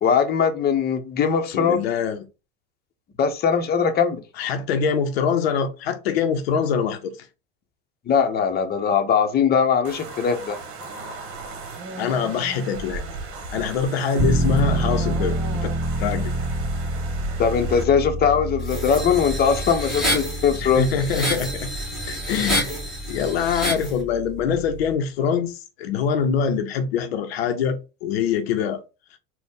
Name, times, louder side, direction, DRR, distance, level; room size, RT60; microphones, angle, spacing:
voice 1, 0.0-1.8 3.2-4.2 8.1-10.6 17.4-20.9, left 6 dB, 30° left, 0.8 m, -20 dB
voice 2, 1.5-2.2 4.4-7.3 12.0-13.0 13.5-15.7 16.0-16.5 20.6-21.7 22.1-22.7 23.1-28.8, left 6 dB, 85° left, 0.6 m, -24 dB
sound 1, 9.8-17.8, right 3 dB, 45° right, 1.2 m, -36 dB
sound 2, 14.2-24.9, right 1 dB, 20° right, 2.3 m, -28 dB
sound 3, 18.6-23.9, equal, ahead, 1.7 m, -28 dB
4.0 x 2.2 x 3.6 m
hypercardioid pair, 90°, 30 cm